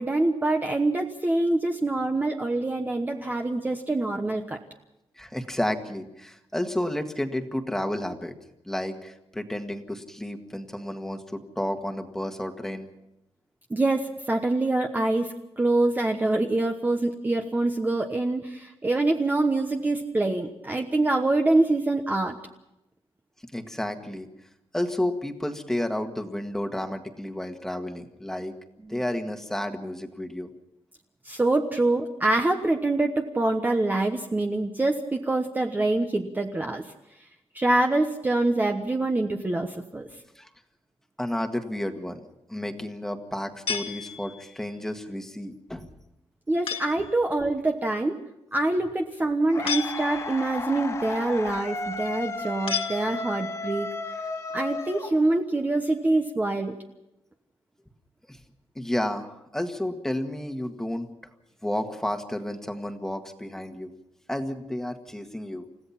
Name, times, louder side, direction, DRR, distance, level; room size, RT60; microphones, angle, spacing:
voice 1, 0.0-4.6 13.7-22.4 28.8-29.0 31.2-36.9 37.5-40.1 46.5-48.1 48.5-53.9 54.5-56.8, right 2 dB, 15° right, 3 dB, 1.1 m, -25 dB
voice 2, 5.2-8.3 8.7-12.9 23.5-24.3 24.7-28.5 28.9-30.5 40.3-40.5 41.2-42.2 42.5-45.9 58.3-58.4 58.7-61.1 61.6-63.9 64.3-65.7, left 1 dB, 5° left, 5 dB, 1.7 m, -31 dB
sound 1, 43.7-44.6 46.7-47.1 49.7-50.5 52.7-53.6, left 7 dB, 65° left, 2.0 m, -33 dB
sound 2, 49.5-55.6, left 3 dB, 30° left, 1.9 m, -34 dB
29.5 x 16.0 x 5.9 m, 0.90 s
wide cardioid pair, 175°, 10 cm